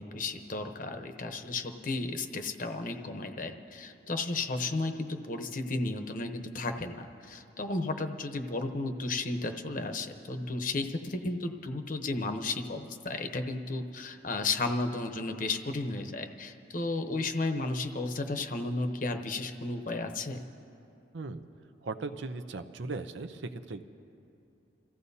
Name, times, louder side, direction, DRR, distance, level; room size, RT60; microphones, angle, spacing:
voice 1, 0.0-20.4, left 2 dB, 50° left, 6 dB, 0.9 m, -33 dB
voice 2, 21.8-23.8, right 3 dB, 85° right, 9 dB, 0.6 m, -38 dB
29.0 x 15.0 x 2.8 m, 2.7 s
head